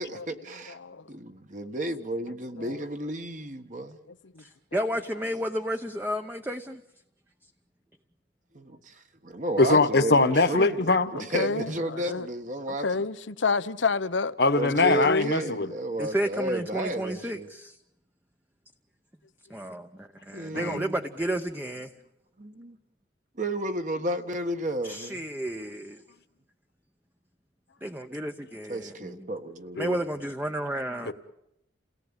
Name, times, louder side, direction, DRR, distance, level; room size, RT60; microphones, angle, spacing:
voice 1, 0.0-0.8 1.1-4.0 9.2-10.8 11.1-12.9 14.6-17.5 20.3-20.9 22.4-22.8 23.4-25.2 28.7-29.9, right 1 dB, 40° right, 1.6 m, -32 dB
voice 2, 0.7-1.1 2.6-2.8 4.1-4.4 11.1-12.3 12.7-14.4 14.8-15.3, left 4 dB, 90° left, 0.9 m, -30 dB
voice 3, 4.4-6.8 12.0-12.1 16.0-17.8 19.5-21.9 24.8-26.0 27.8-29.3 29.8-31.1, right 1 dB, 10° right, 0.9 m, -32 dB
voice 4, 9.6-11.1 14.4-15.7 20.5-20.8 29.8-30.0, left 3 dB, 60° left, 1.4 m, -22 dB
29.5 x 18.0 x 9.0 m
head